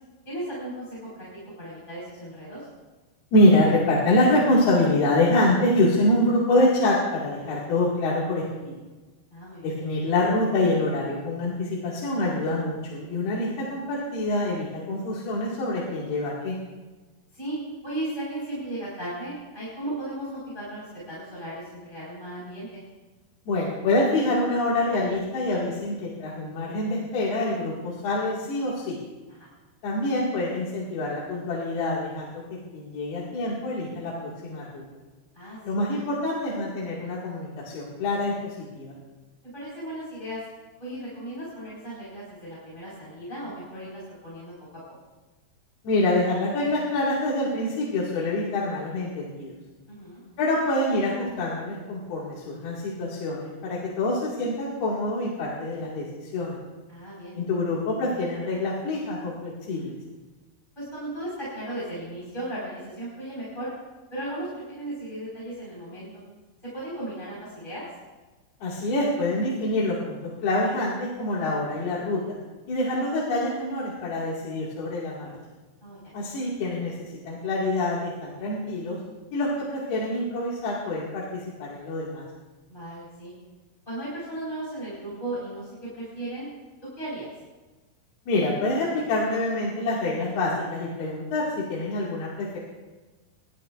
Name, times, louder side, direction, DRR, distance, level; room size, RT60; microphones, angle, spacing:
voice 1, 0.2-1.3 1.6-2.7 9.3-9.7 17.3-17.6 17.8-22.8 29.3-29.5 35.3-35.8 39.5-40.4 40.8-44.5 49.9-50.2 56.9-57.4 60.7-63.7 64.1-66.2 66.6-67.8 75.8-76.0 82.7-83.3 83.9-86.5 87.0-87.3, right 1 dB, 10° left, -8 dB, 4.6 m, -36 dB
voice 2, 3.3-8.7 9.6-16.5 23.5-29.0 29.8-32.3 32.7-34.8 35.6-38.3 38.7-38.9 45.8-49.6 50.4-56.6 57.4-60.0 68.6-70.2 70.4-72.4 72.7-75.3 76.1-79.0 79.3-82.3 88.3-92.6, left 1 dB, 65° left, -6 dB, 3.9 m, -25 dB
27.5 x 12.0 x 2.5 m, 1.2 s
omnidirectional pair, 4.9 m